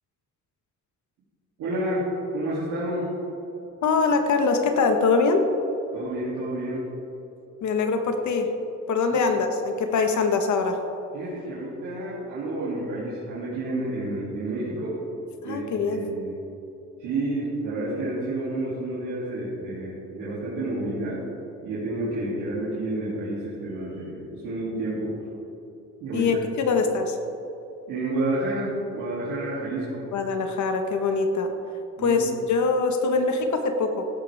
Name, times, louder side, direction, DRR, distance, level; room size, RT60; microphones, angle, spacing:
voice 1, 1.6-2.0 2.3-3.1 5.9-6.9 9.1-9.2 11.1-15.0 15.4-16.4 17.0-21.2 21.6-25.1 26.0-26.3 26.6-26.7 27.9-30.1 32.0-32.2, right 1 dB, 90° right, -9 dB, 3.1 m, -30 dB
voice 2, 3.8-5.5 7.6-8.5 8.9-10.8 15.4-16.0 26.1-27.2 30.1-31.5 32.0-34.1, left 4 dB, 70° left, 5 dB, 1.5 m, -23 dB
16.0 x 11.5 x 3.6 m, 3.0 s
cardioid pair, 90°, 30 cm